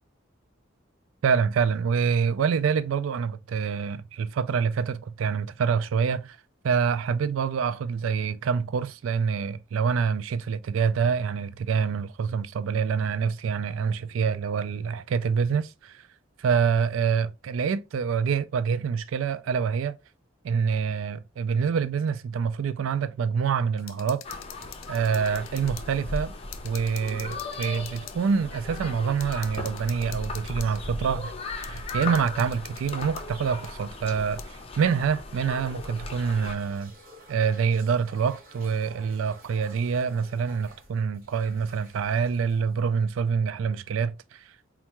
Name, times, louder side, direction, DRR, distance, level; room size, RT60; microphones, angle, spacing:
voice 1, 1.2-6.4 6.6-16.0 16.4-20.0 20.4-24.2 24.9-26.3 26.6-31.3 31.7-36.9 37.3-44.4, right 6 dB, 80° right, 0.3 m, -26 dB
sound 1, 23.8-25.9 26.2-26.3 26.5-28.2 28.8-28.9 29.2-30.8 31.6-33.2 33.6-33.7 34.4-34.5, left 12 dB, 80° left, 0.4 m, -45 dB
sound 2, 24.2-36.5, left 2 dB, 30° left, 0.6 m, -37 dB
sound 3, 35.7-43.3, right 1 dB, 45° right, 1.0 m, -52 dB
4.4 x 2.4 x 2.9 m
head